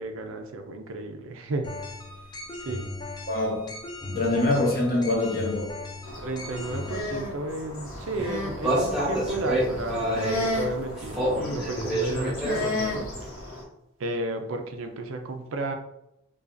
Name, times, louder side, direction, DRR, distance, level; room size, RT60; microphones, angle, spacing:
voice 1, 0.0-1.7 2.5-2.9 6.2-13.1 14.0-15.7, right 2 dB, 75° right, 5 dB, 0.5 m, -33 dB
sound 1, 1.6-7.0, left 2 dB, 20° left, 0.4 m, -38 dB
voice 2, 3.3-3.8 4.1-5.7, left 2 dB, 45° left, -3 dB, 1.0 m, -25 dB
sound 2, 6.0-13.6, left 2 dB, 80° left, 1.0 m, -34 dB
sound 3, 7.9-13.3, equal, 5° right, 0.9 m, -29 dB
4.8 x 2.3 x 2.5 m, 0.82 s
head